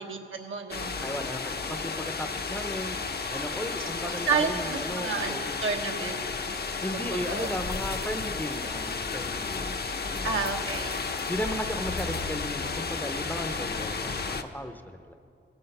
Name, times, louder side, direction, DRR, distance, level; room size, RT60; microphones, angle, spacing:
voice 1, 0.0-1.0 3.8-6.2 6.9-7.5 10.2-11.0, right 5 dB, 80° right, 2 dB, 1.2 m, -31 dB
sound 1, 0.7-14.4, left 4 dB, 50° left, 0.7 m, -33 dB
voice 2, 1.0-3.0 3.3-5.6 6.8-10.5 11.3-15.1, equal, 10° left, 8 dB, 0.6 m, -36 dB
18.5 x 7.9 x 5.5 m, 2.5 s
wide cardioid pair, 75°, 21 cm